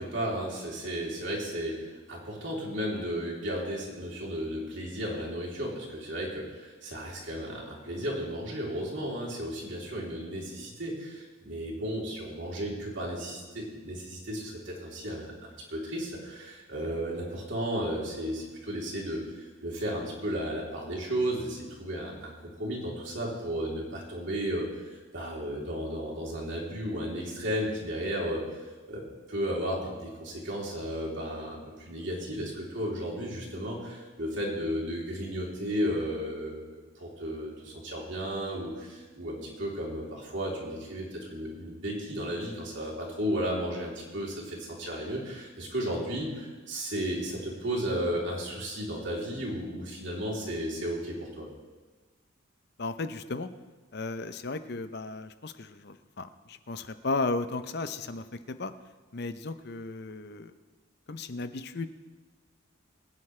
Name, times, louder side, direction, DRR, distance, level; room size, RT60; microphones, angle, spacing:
voice 1, 0.0-24.7 25.1-28.4 28.9-29.0 29.3-36.6 37.0-51.5, equal, 60° right, -3 dB, 3.4 m, -34 dB
voice 2, 52.8-53.5 53.9-58.7 59.1-60.5 61.1-61.9, left 3 dB, 50° left, 11 dB, 0.6 m, -35 dB
22.5 x 9.6 x 3.3 m, 1.3 s
head